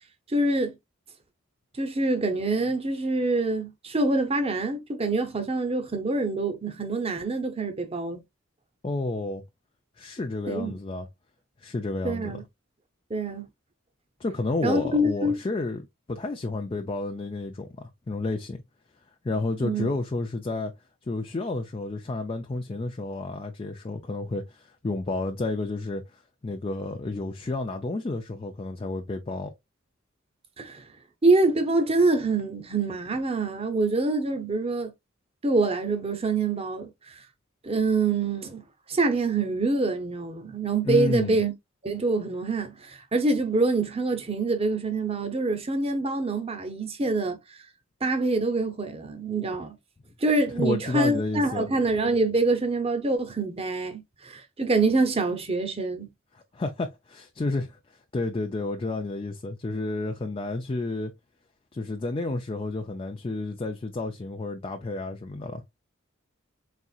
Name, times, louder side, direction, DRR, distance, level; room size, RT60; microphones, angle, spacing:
voice 1, 0.3-0.7 1.8-8.2 10.5-10.8 12.0-12.4 13.1-13.5 14.6-15.4 19.6-19.9 30.6-30.8 31.2-34.9 35.4-37.1 37.6-38.6 38.9-41.5 41.8-47.4 48.0-49.8 50.2-56.1, right 2 dB, 30° right, 0.8 m, -25 dB
voice 2, 8.8-9.4 10.0-11.1 11.6-12.4 14.2-18.6 19.2-20.7 21.1-29.5 40.8-41.4 50.6-51.7 56.3-61.1 61.7-65.6, left 2 dB, 25° left, 0.4 m, -31 dB
4.2 x 3.6 x 2.4 m
head